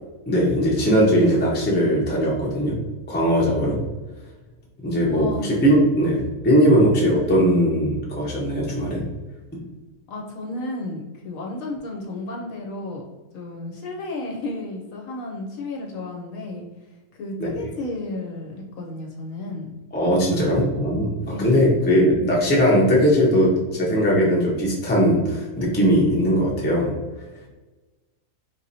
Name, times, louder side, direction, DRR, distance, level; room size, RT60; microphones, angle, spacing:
voice 1, 0.3-2.7 3.1-3.8 4.8-9.0 17.4-17.5 19.9-21.1 21.4-26.9, equal, 10° left, -4 dB, 0.4 m, -19 dB
voice 2, 5.0-5.5 6.1-6.3 10.1-13.0 13.3-16.6 17.1-19.7 21.3-21.6, left 2 dB, 65° left, 0 dB, 1.0 m, -32 dB
3.8 x 2.9 x 2.6 m, 1.2 s
omnidirectional pair, 1.6 m